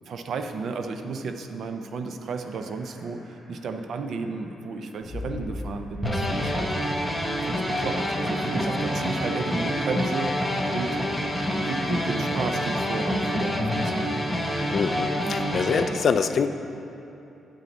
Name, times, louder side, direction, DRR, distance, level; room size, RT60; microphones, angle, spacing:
voice 1, 0.1-6.8 7.4-10.5 10.7-11.0 11.5-14.2 15.2-15.5, right 4 dB, 55° right, 7 dB, 0.5 m, -33 dB
sound 1, 2.3-9.2, left 2 dB, 20° left, 2.0 m, -43 dB
sound 2, 6.0-15.8, equal, ahead, 0.7 m, -27 dB
voice 2, 14.7-16.5, left 6 dB, 40° left, 9 dB, 0.3 m, -25 dB
9.0 x 7.2 x 4.0 m, 2.9 s
wide cardioid pair, 175°, 0 cm